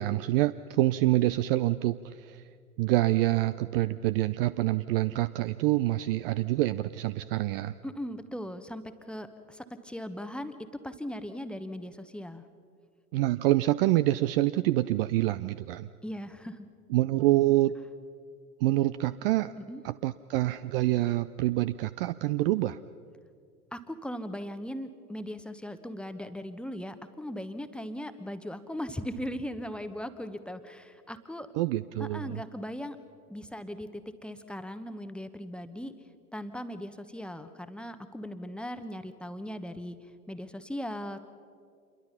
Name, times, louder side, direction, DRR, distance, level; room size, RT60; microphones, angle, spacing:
voice 1, 0.0-2.4 2.8-7.7 13.1-15.9 16.9-17.8 18.6-19.5 19.8-22.8 31.6-32.4, right 16 dB, 40° right, 14 dB, 0.5 m, -26 dB
voice 2, 7.8-10.6 10.8-12.5 16.0-16.7 19.6-19.8 23.7-31.5 32.0-33.0 33.3-35.9 36.3-40.0 40.3-41.2, equal, ahead, 9 dB, 1.1 m, -38 dB
27.5 x 22.5 x 5.7 m, 2.3 s
figure-of-eight pair, 80°, 45 cm